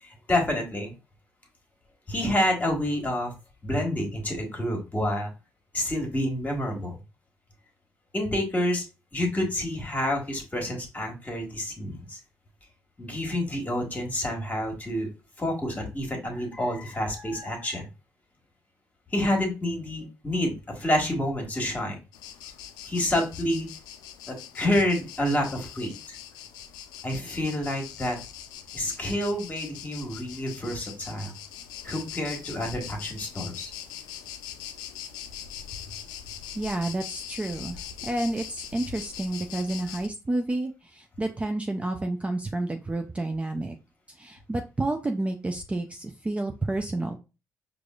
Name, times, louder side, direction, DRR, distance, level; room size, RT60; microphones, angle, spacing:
voice 1, 0.0-0.9 2.1-3.3 3.6-5.3 5.7-7.0 8.1-8.8 9.1-12.2 13.0-15.1 15.4-17.9 19.1-22.0 22.8-23.7 24.3-26.2 27.0-28.2 28.7-31.3 31.8-33.7, left 1 dB, 20° left, 1 dB, 1.4 m, -28 dB
sound 1, 22.1-40.1, left 9 dB, 80° left, 0.3 m, -42 dB
voice 2, 36.5-43.8 44.1-47.2, right 2 dB, 20° right, 5 dB, 0.4 m, -30 dB
4.7 x 2.5 x 2.3 m, 0.30 s
hypercardioid pair, 55°, 7 cm